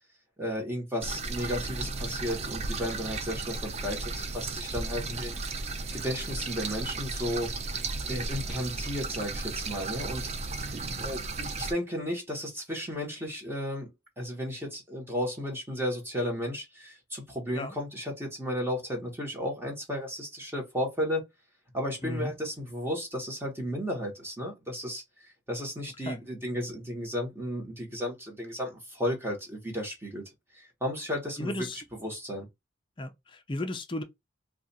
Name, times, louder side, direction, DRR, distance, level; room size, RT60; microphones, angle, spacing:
voice 1, 0.4-5.3 5.9-7.5 8.0-13.9 14.2-21.3 21.7-30.2 30.5-31.5 32.0-32.5, equal, 10° right, 1.1 m, -34 dB
sound 1, 1.0-11.7, right 3 dB, 35° right, 0.3 m, -35 dB
voice 2, 31.4-31.8 33.0-34.0, left 1 dB, 25° left, 0.5 m, -35 dB
2.5 x 2.4 x 4.0 m
head